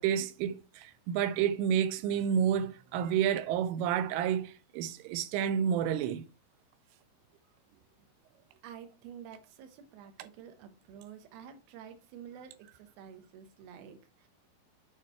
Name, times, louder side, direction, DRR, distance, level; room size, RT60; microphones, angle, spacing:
voice 1, 0.0-6.3 10.2-10.3, right 8 dB, 85° right, 3.2 m, -30 dB
voice 2, 8.6-14.3, right 8 dB, 70° right, 2.4 m, -50 dB
8.2 x 4.8 x 4.4 m
omnidirectional pair, 5.6 m